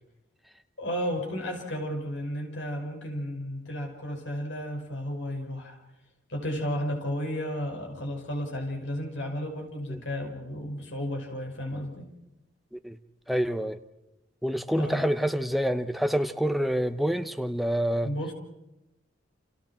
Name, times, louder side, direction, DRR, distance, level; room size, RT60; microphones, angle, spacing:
voice 1, 0.8-5.8 6.3-12.1 14.7-15.1 18.0-18.3, equal, 75° left, 2 dB, 6.0 m, -33 dB
voice 2, 13.3-13.8 14.4-18.1, equal, ahead, 8 dB, 0.9 m, -27 dB
29.5 x 28.0 x 4.5 m, 0.94 s
head